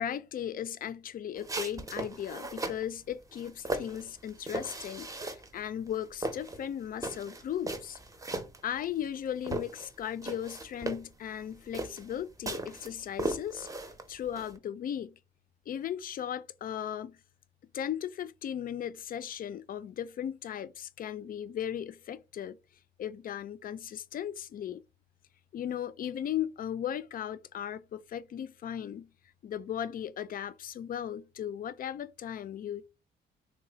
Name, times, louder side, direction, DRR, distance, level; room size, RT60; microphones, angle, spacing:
voice 1, 0.0-8.0 8.6-13.7 14.1-15.2 15.7-17.2 17.7-22.6 23.0-24.8 25.5-29.1 29.4-32.9, left 9 dB, 45° left, 0.4 m, -37 dB
sound 1, 1.4-2.9 3.3-5.6 5.9-9.2 9.4-14.6, right 2 dB, 15° right, 0.7 m, -37 dB
3.0 x 2.1 x 3.9 m
cardioid pair, 90°, 20 cm